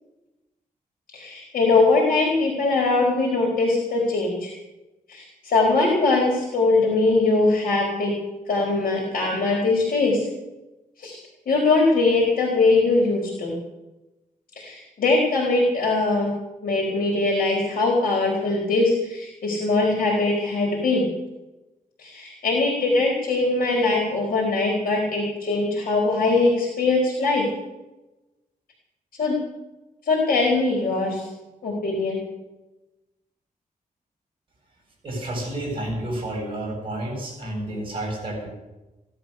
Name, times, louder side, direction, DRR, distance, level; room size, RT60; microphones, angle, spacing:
voice 1, 1.1-4.5 5.1-8.1 8.5-10.3 11.0-11.2 11.5-13.5 14.6-16.3 16.6-21.0 22.0-27.4 29.2-29.4 30.1-31.3 31.6-32.2, left 3 dB, 75° left, -1 dB, 4.5 m, -21 dB
voice 2, 35.0-38.5, right 1 dB, 35° right, -1 dB, 8.0 m, -30 dB
17.5 x 11.5 x 6.8 m, 1.0 s
wide cardioid pair, 160°, 15 cm